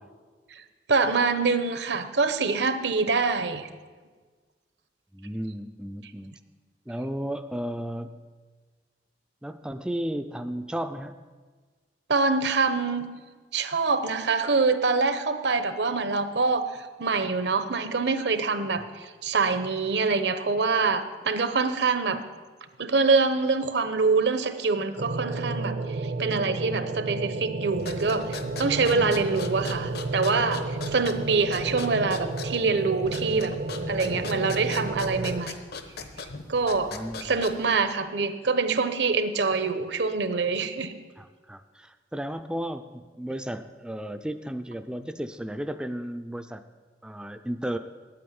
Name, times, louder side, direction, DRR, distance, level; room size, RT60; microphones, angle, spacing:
voice 1, 0.9-3.7 12.1-13.1 13.5-22.2 22.8-33.5 33.9-35.6 36.5-40.9, right 4 dB, 75° right, 10 dB, 0.9 m, -25 dB
voice 2, 5.1-6.4 6.9-8.2 9.4-11.2 28.9-29.3 36.9-37.4 41.2-46.6 47.0-47.8, right 1 dB, 5° right, 9 dB, 0.3 m, -34 dB
sound 1, 25.0-35.4, right 2 dB, 55° right, 0.6 m, -32 dB
sound 2, 27.7-37.8, left 3 dB, 65° left, 1.0 m, -39 dB
9.0 x 8.6 x 9.5 m, 1.4 s
head